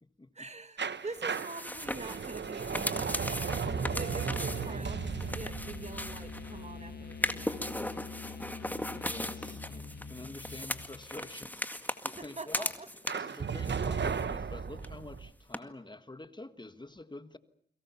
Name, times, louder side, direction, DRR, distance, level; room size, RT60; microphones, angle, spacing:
voice 1, 0.4-3.6 3.9-7.7 11.7-11.8 12.2-12.9, right 3 dB, 40° right, 1.7 m, -45 dB
sound 1, 0.8-7.6 13.1-15.3, right 6 dB, 75° right, 1.2 m, -35 dB
sound 2, 1.1-6.6 7.1-13.4 13.7-14.5 14.8-14.9 15.5-15.6, left 1 dB, 10° left, 2.0 m, -38 dB
sound 3, 3.7-11.3, left 5 dB, 60° left, 1.8 m, -45 dB
voice 2, 9.0-12.7 13.1-17.4, left 2 dB, 25° left, 1.5 m, -47 dB
30.0 x 23.0 x 7.0 m
wide cardioid pair, 85°, 18 cm